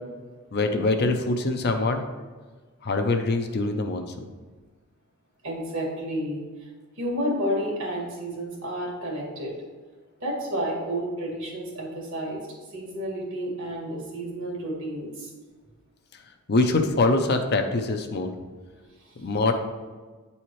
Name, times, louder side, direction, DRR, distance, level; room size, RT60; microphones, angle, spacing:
voice 1, 0.5-2.0 2.8-4.0 16.5-18.3 19.2-19.5, left 2 dB, 45° left, 5 dB, 0.6 m, -23 dB
voice 2, 5.4-6.7 7.0-9.6 10.2-12.4 12.7-15.3 19.0-19.2, equal, 60° right, -2 dB, 2.0 m, -31 dB
9.4 x 4.2 x 3.1 m, 1.4 s
head